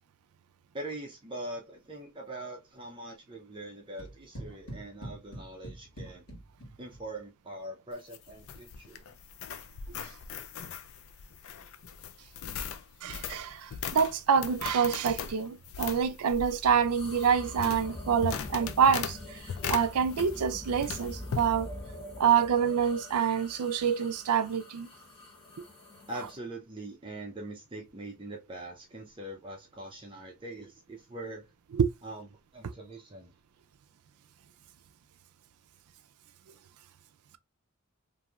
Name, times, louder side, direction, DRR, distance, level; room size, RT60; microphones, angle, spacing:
voice 1, 0.7-6.3 6.8-9.0 26.1-31.4 32.0-32.3 32.5-33.3, right 1 dB, 20° right, 0.6 m, -42 dB
sound 1, 4.0-7.2, right 1 dB, 80° left, 1.4 m, -45 dB
sound 2, 7.9-20.5 20.8-21.5, left 7 dB, 65° left, 0.4 m, -39 dB
voice 2, 13.0-19.4 19.7-21.7 22.2-24.9 31.8-31.9 32.6-32.7, right 7 dB, 80° right, 0.4 m, -26 dB
sound 3, 16.6-26.4, left 1 dB, 25° left, 0.9 m, -44 dB
3.0 x 2.6 x 2.3 m
head